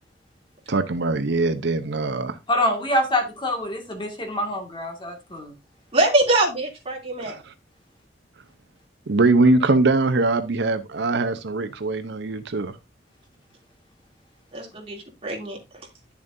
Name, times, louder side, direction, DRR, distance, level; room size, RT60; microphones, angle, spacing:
voice 1, 0.7-2.4 7.2-7.5 9.1-12.8, right 3 dB, 70° right, 0.7 m, -22 dB
voice 2, 2.5-5.5, left 1 dB, 25° left, 2.0 m, -25 dB
voice 3, 5.9-7.4 14.5-15.6, right 2 dB, 35° right, 2.8 m, -23 dB
10.5 x 7.1 x 2.7 m
head